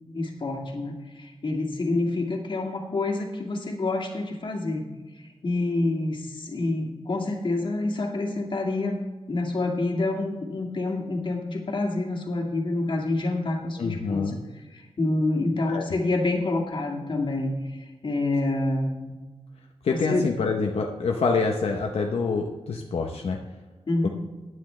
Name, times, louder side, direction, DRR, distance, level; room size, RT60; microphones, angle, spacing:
voice 1, 0.1-4.9 5.2-9.0 9.3-14.3 14.7-19.2 19.9-20.3 23.9-24.1, left 2 dB, 55° left, 1 dB, 2.0 m, -27 dB
voice 2, 13.8-14.4 15.7-15.9 19.8-23.4, left 4 dB, 90° left, 1 dB, 0.9 m, -26 dB
17.0 x 9.6 x 3.3 m, 1.3 s
wide cardioid pair, 80°, 10 cm